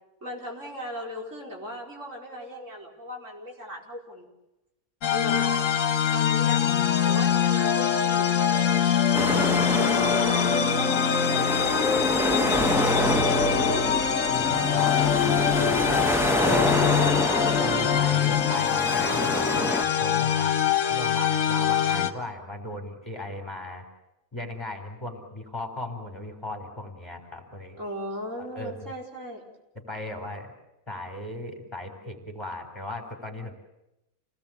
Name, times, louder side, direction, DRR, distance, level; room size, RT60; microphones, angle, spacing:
voice 1, 0.2-4.3 5.1-5.7 6.1-6.7 7.0-9.3 9.7-12.5 13.4-13.9 27.8-29.4, equal, 55° right, -1 dB, 5.2 m, -37 dB
sound 1, 5.0-22.1, left 8 dB, 60° left, 1.6 m, -24 dB
sound 2, 9.1-19.8, equal, ahead, 1.6 m, -27 dB
voice 2, 14.3-16.9 17.6-20.6 20.9-23.8 24.3-27.8 28.4-28.8 29.7-30.5 30.9-33.5, left 1 dB, 20° left, 4 dB, 4.0 m, -37 dB
28.5 x 19.0 x 8.7 m, 0.91 s
omnidirectional pair, 1.5 m